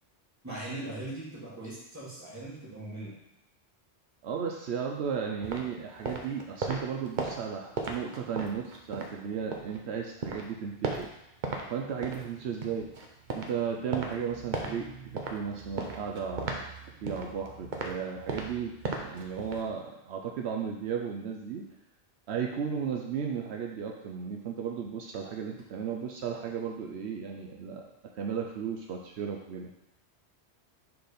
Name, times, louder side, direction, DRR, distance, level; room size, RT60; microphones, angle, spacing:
voice 1, 0.4-3.1, right 2 dB, 15° right, -7 dB, 1.8 m, -40 dB
voice 2, 4.2-11.1 11.7-12.9 13.3-14.9 15.1-16.6 17.0-18.7 19.0-21.6 22.3-27.9 28.2-29.7, right 7 dB, 75° right, 1 dB, 0.9 m, -35 dB
sound 1, 5.4-9.8 10.1-11.7 11.9-19.7, right 4 dB, 50° right, 0.8 m, -37 dB
4.7 x 3.9 x 5.0 m, 0.86 s
omnidirectional pair, 1.1 m